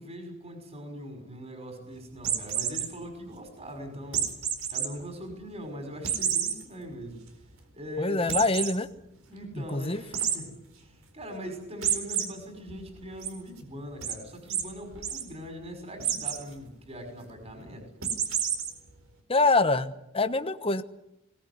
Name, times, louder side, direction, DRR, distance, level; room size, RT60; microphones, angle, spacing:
voice 1, 0.0-4.3 4.7-7.2 7.7-8.2 9.3-17.9, equal, 30° right, 5 dB, 5.5 m, -41 dB
sound 1, 2.2-2.9 4.1-4.9 5.3-5.4 6.0-6.5 7.0-7.1 7.4-7.5 8.3-8.7 10.1-10.4 11.8-12.2 12.7-13.3 14.0-14.2 14.5-14.6 14.9-15.2 16.0-16.4 18.0-18.7, right 8 dB, 75° right, 4.5 m, -28 dB
voice 2, 8.0-8.9 9.6-10.0 19.3-20.8, left 3 dB, 25° left, 10 dB, 1.2 m, -25 dB
22.0 x 19.0 x 9.6 m, 0.82 s
head